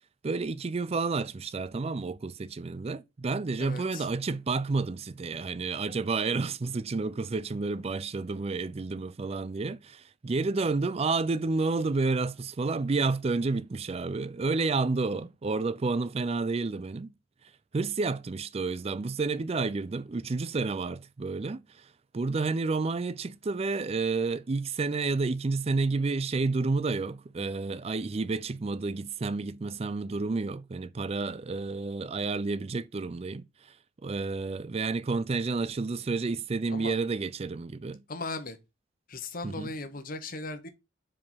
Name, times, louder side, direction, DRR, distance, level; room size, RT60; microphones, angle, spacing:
voice 1, 0.2-17.1 17.7-33.8 34.0-38.0 39.4-39.7, right 3 dB, 35° right, 0.4 m, -30 dB
voice 2, 3.6-4.1 36.7-37.0 38.1-38.6 39.1-40.7, left 3 dB, 50° left, 1.0 m, -37 dB
4.9 x 4.8 x 5.5 m
head